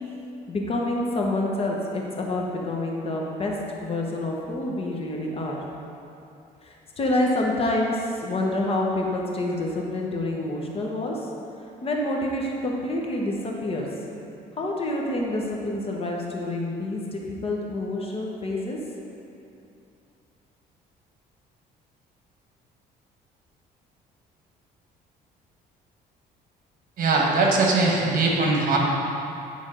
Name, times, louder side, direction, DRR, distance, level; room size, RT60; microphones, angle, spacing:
voice 1, 0.5-3.5 3.8-5.6 6.6-11.3 11.8-13.9 14.6-18.8, left 1 dB, 35° left, -1 dB, 1.0 m, -27 dB
voice 2, 27.0-28.8, right 3 dB, 55° right, -1 dB, 1.4 m, -21 dB
9.8 x 3.5 x 5.1 m, 2.7 s
cardioid pair, 110°, 17 cm